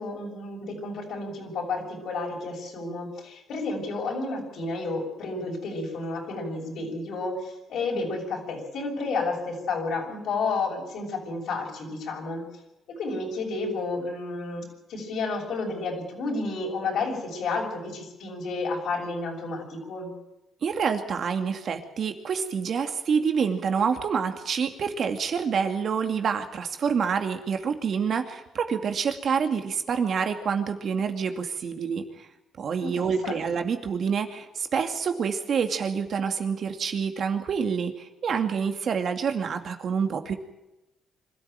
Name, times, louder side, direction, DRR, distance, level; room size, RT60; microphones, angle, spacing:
voice 1, 0.0-12.4 12.9-14.6 14.9-20.1 32.8-33.4, left 3 dB, 70° left, -1 dB, 6.5 m, -31 dB
voice 2, 20.6-32.3 32.6-40.3, right 6 dB, 55° right, 6 dB, 2.4 m, -27 dB
25.0 x 13.5 x 9.1 m, 0.96 s
cardioid pair, 90°, 0 cm